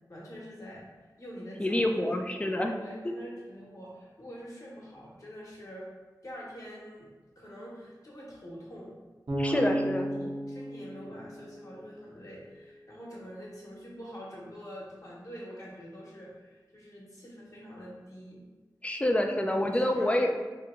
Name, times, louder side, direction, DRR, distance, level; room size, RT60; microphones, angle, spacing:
voice 1, 0.1-0.9 1.2-2.0 2.3-2.5 2.7-5.9 6.2-7.1 7.4-8.9 9.4-9.8 10.2-18.4 19.6-20.4, equal, 45° left, -5 dB, 1.1 m, -45 dB
voice 2, 1.6-2.8 3.0-3.1 9.4-10.3 18.8-20.4, left 1 dB, 15° left, 3 dB, 0.4 m, -27 dB
Bass guitar, 9.3-12.3, right 1 dB, 65° right, 0.8 m, -34 dB
2.8 x 2.2 x 3.7 m, 1.3 s
cardioid pair, 50°, 8 cm